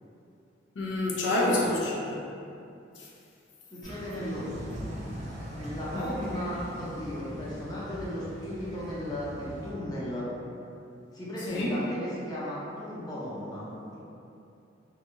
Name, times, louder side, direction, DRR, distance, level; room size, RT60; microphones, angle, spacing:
voice 1, 0.8-2.2 5.9-6.1 11.5-11.7, left 2 dB, 75° left, -4 dB, 0.4 m, -28 dB
voice 2, 1.4-1.7 3.7-4.8 5.6-10.3 11.1-14.0, equal, 20° left, -8 dB, 0.5 m, -36 dB
sound 1, 3.8-9.7, equal, 40° right, 0.5 m, -40 dB
2.5 x 2.3 x 3.0 m, 2.6 s
head